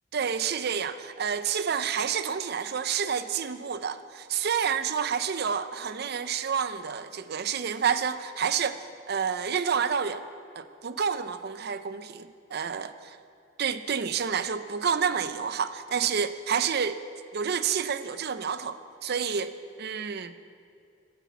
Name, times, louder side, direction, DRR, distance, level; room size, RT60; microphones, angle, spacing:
voice 1, 0.1-10.2 10.6-13.2 13.6-17.0 17.3-19.5 19.8-20.3, right 7 dB, 55° right, 12 dB, 0.6 m, -29 dB
11.0 x 10.0 x 8.4 m, 2.5 s
head